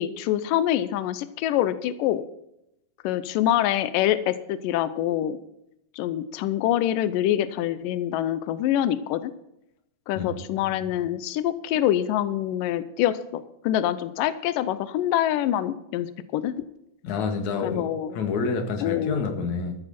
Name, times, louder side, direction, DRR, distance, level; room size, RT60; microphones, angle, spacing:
voice 1, 0.0-2.3 3.0-5.4 6.0-9.3 10.1-16.5 17.6-18.2 18.8-19.2, left 12 dB, 90° left, 13 dB, 1.9 m, -25 dB
voice 2, 17.0-17.8 18.1-19.8, left 5 dB, 55° left, 4 dB, 2.8 m, -28 dB
14.0 x 13.5 x 4.3 m, 0.82 s
omnidirectional pair, 4.8 m